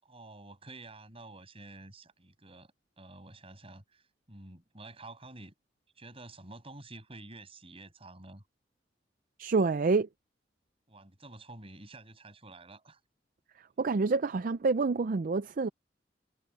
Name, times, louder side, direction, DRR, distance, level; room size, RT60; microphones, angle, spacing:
voice 1, 0.0-5.5 6.0-8.4 10.9-13.0, right 2 dB, 30° right, 6.6 m, -50 dB
voice 2, 9.4-10.1 13.8-15.7, right 4 dB, 50° right, 0.4 m, -27 dB
head